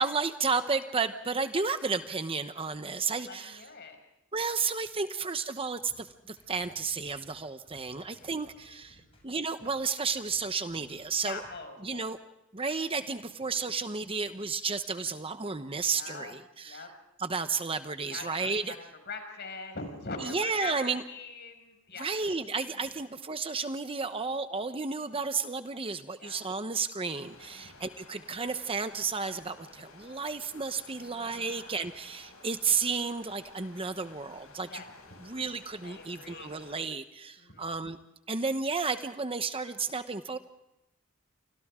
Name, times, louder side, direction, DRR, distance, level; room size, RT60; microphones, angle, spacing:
voice 1, 0.0-3.6 4.3-11.4 11.8-12.2 12.5-16.8 17.2-18.8 20.2-21.0 22.0-34.8 35.2-38.0 38.3-40.4, right 4 dB, 25° right, 9 dB, 1.0 m, -32 dB
voice 2, 3.2-4.0 8.0-8.3 8.6-9.3 11.2-12.0 13.5-13.6 15.9-16.3 16.6-16.9 18.1-22.2 26.2-26.4 27.5-27.9 30.9-31.7 34.7-34.9 35.8-36.5 37.4-37.7, left 3 dB, 55° left, 5 dB, 5.7 m, -43 dB
sound 1, 5.7-11.5, equal, 30° left, 7.6 m, -62 dB
sound 2, 27.2-36.8, left 3 dB, 85° left, 6.8 m, -54 dB
29.5 x 25.5 x 3.7 m, 0.88 s
head